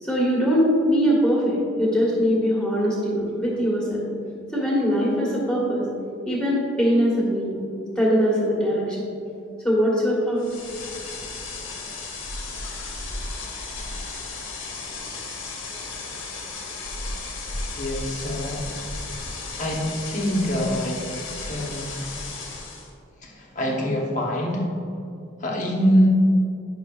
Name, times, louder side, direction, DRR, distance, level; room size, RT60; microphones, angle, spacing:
voice 1, 0.0-4.0 4.5-5.9 6.2-7.6 7.9-9.0 9.6-10.4, equal, 5° left, -5 dB, 1.6 m, -22 dB
sound 1, 10.4-22.9, left 3 dB, 85° left, 1.2 m, -34 dB
voice 2, 17.8-18.6 19.6-19.8 20.1-21.0 21.4-21.9 23.2-24.6 25.4-26.1, equal, 40° left, -2 dB, 1.1 m, -24 dB
10.0 x 6.0 x 2.4 m, 2.6 s
head